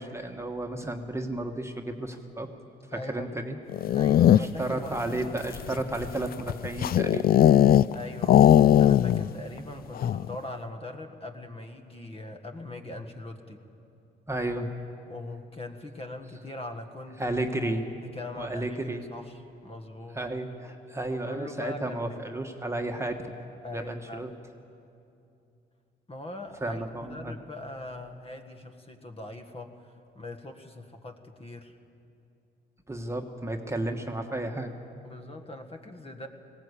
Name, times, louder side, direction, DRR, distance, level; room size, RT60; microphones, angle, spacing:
voice 1, 0.0-2.5 2.9-3.6 4.3-7.3 14.3-14.7 17.2-17.8 18.4-19.0 20.1-23.3 23.7-24.3 26.6-27.3 32.9-34.7, right 1 dB, 15° right, 3 dB, 1.4 m, -32 dB
voice 2, 2.9-3.4 3.9-5.3 7.9-13.6 15.1-17.4 18.0-20.2 21.1-22.2 23.6-24.3 26.1-31.8 35.0-36.3, left 2 dB, 30° left, 5 dB, 1.6 m, -41 dB
sound 1, 3.7-4.7 5.4-7.9 8.2-9.3 9.6-9.7 10.0-10.3, left 11 dB, 50° left, 0.4 m, -19 dB
19.5 x 17.0 x 8.3 m, 2.6 s
cardioid pair, 90°, 20 cm